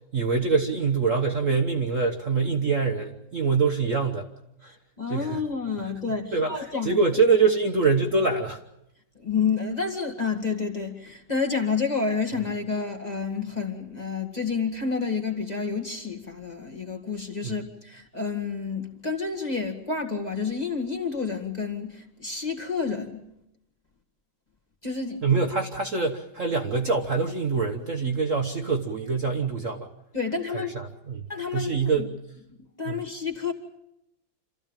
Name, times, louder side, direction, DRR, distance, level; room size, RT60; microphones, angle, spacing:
voice 1, 0.1-4.3 4.6-4.7 5.1-5.4 6.3-8.6 17.4-17.5 25.2-29.9 30.5-31.2 31.5-32.1 32.9-33.0, right 4 dB, 45° right, 1.3 m, -24 dB
voice 2, 4.7-7.0 9.2-23.2 24.8-25.2 30.1-30.8 31.3-32.1 32.8-33.5, left 5 dB, 20° left, 2.1 m, -29 dB
27.0 x 14.5 x 8.9 m
omnidirectional pair, 2.2 m